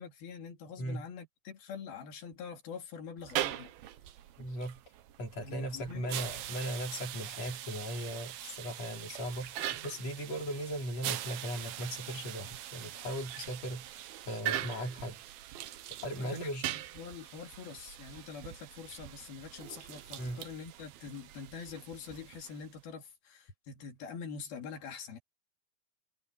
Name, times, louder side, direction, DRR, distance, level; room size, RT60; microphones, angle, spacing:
voice 1, 0.0-3.7 5.4-6.1 16.2-25.2, left 6 dB, 80° left, 4.7 m, -45 dB
sound 1, 3.2-22.8, right 12 dB, 90° right, 3.0 m, -42 dB
voice 2, 4.4-4.8 5.2-15.2 16.0-16.7 20.2-20.4, equal, 45° left, 5.0 m, -38 dB
omnidirectional pair, 4.2 m